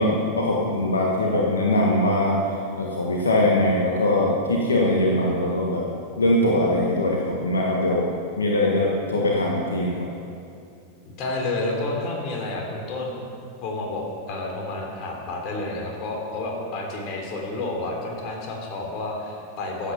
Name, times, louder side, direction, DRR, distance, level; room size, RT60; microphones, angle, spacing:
voice 1, 0.0-2.3 2.7-5.8 6.2-8.0 8.4-9.9, left 1 dB, 80° left, -2 dB, 1.5 m, -21 dB
voice 2, 11.0-13.3 13.6-19.9, left 2 dB, 45° left, 0 dB, 3.2 m, -30 dB
14.5 x 8.8 x 5.8 m, 2.4 s
figure-of-eight pair, 90°, 0 cm